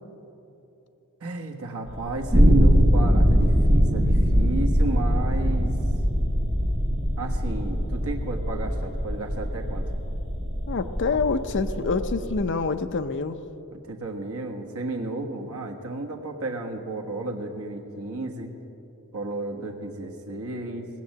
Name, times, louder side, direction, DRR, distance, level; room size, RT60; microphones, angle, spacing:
voice 1, 1.2-5.8 7.2-9.9 13.7-18.5 19.1-20.9, right 2 dB, 70° right, 2 dB, 1.4 m, -33 dB
sound 1, 1.9-12.4, equal, 35° right, 3.4 m, -22 dB
voice 2, 10.7-13.4, left 4 dB, 55° left, 10 dB, 0.6 m, -26 dB
18.5 x 7.7 x 7.4 m, 3.0 s
head